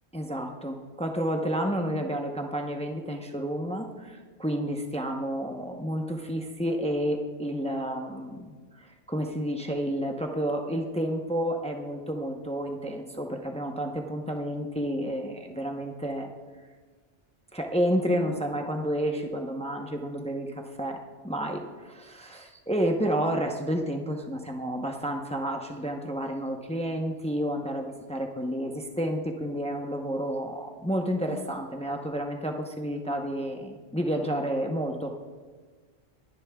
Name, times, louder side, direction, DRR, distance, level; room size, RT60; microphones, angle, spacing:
voice 1, 0.1-16.3 17.5-21.0 21.2-35.1, equal, 5° left, 3 dB, 0.6 m, -30 dB
24.5 x 11.0 x 2.3 m, 1.5 s
omnidirectional pair, 1.2 m